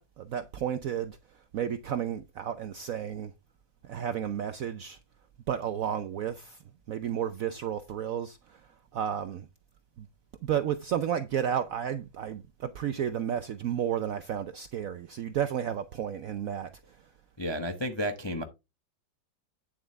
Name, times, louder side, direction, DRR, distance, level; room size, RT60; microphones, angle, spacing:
voice 1, 0.0-3.3 3.8-5.0 5.5-6.6 6.9-9.5 10.0-10.1 10.4-17.1, right 9 dB, 70° right, 0.8 m, -32 dB
voice 2, 17.4-18.4, equal, 25° left, 0.5 m, -32 dB
9.4 x 7.5 x 3.2 m
omnidirectional pair, 2.0 m